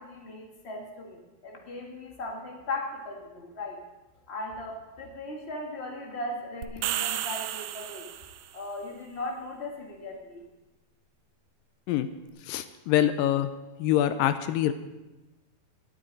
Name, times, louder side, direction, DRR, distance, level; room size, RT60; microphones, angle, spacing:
voice 1, 0.0-3.8 4.3-8.1 8.5-10.4, left 2 dB, 65° left, 0 dB, 0.6 m, -38 dB
sound 1, 6.6-8.6, right 13 dB, 85° right, 2.5 m, -33 dB
voice 2, 12.5-13.5 13.8-14.7, left 12 dB, 80° left, 11 dB, 2.1 m, -25 dB
21.0 x 9.0 x 4.0 m, 1.1 s
omnidirectional pair, 4.3 m